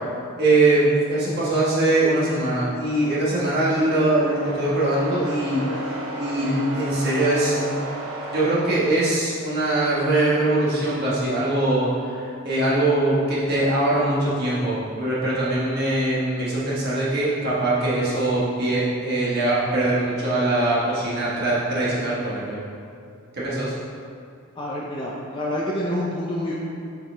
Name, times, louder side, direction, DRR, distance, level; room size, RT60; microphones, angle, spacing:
voice 1, 0.4-5.7 6.2-7.8 8.3-22.6 23.4-23.7, right 2 dB, 50° right, -8 dB, 1.5 m, -22 dB
sound 1, 2.7-9.7, right 1 dB, 90° right, 1.1 m, -34 dB
voice 2, 24.6-26.5, left 1 dB, 25° left, -5 dB, 0.5 m, -27 dB
7.0 x 4.7 x 3.4 m, 2.4 s
head